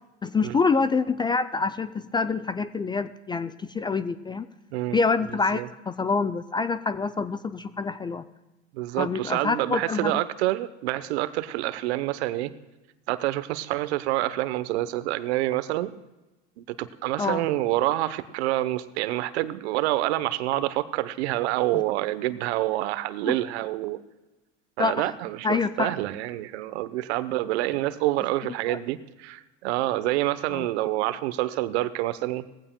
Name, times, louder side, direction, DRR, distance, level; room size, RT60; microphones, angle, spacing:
voice 1, 0.2-4.5 4.9-8.2 9.0-10.2 17.2-17.5 23.3-23.4 24.8-25.1 25.4-25.9 28.7-28.8 30.5-30.7, left 4 dB, 15° left, 12 dB, 0.4 m, -26 dB
voice 2, 8.7-12.5 13.1-15.9 16.6-24.0 24.8-32.5, right 16 dB, 65° right, 14 dB, 0.9 m, -27 dB
19.0 x 15.0 x 2.2 m, 1.1 s
hypercardioid pair, 90°, 35 cm